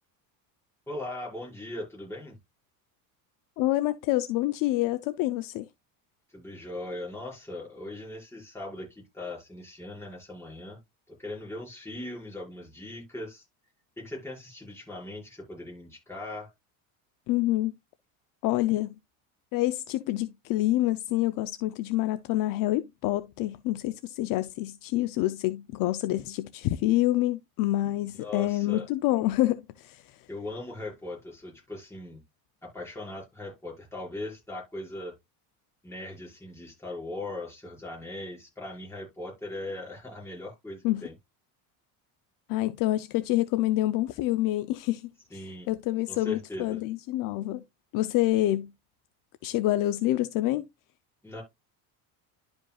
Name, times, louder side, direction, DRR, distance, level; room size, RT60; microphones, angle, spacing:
voice 1, 0.9-2.4 6.3-10.8 11.1-13.4 14.0-16.5 28.2-28.9 30.3-32.2 32.6-35.1 35.8-41.1 45.3-45.7 46.1-46.8 51.2-51.4, left 2 dB, 5° left, 5.4 m, -39 dB
voice 2, 3.6-5.6 17.3-17.7 18.4-19.0 19.5-30.2 40.8-41.0 42.5-47.6 47.9-48.7 49.4-50.6, left 16 dB, 55° left, 0.6 m, -27 dB
11.5 x 5.2 x 2.3 m
cardioid pair, 140°, 40 cm